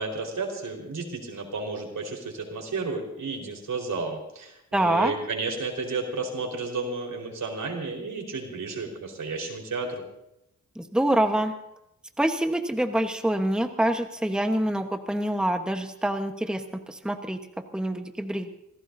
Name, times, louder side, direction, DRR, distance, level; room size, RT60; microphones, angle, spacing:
voice 1, 0.0-10.0, right 3 dB, 85° right, 1 dB, 4.5 m, -32 dB
voice 2, 4.7-5.1 10.8-11.5 12.2-17.4 17.7-18.5, right 1 dB, 5° right, 5 dB, 1.1 m, -26 dB
26.5 x 17.5 x 2.7 m, 0.84 s
wide cardioid pair, 105°, 31 cm